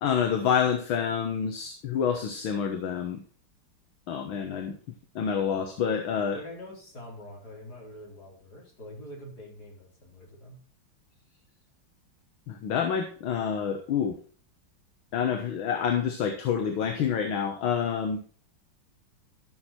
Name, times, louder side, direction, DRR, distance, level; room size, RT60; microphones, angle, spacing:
voice 1, 0.0-3.2 4.1-4.8 5.2-6.4 12.5-14.2 15.1-18.2, left 7 dB, 75° left, 6 dB, 1.9 m, -28 dB
voice 2, 6.3-10.6, left 1 dB, 50° left, -2 dB, 4.8 m, -45 dB
13.5 x 6.3 x 4.2 m, 0.42 s
omnidirectional pair, 2.3 m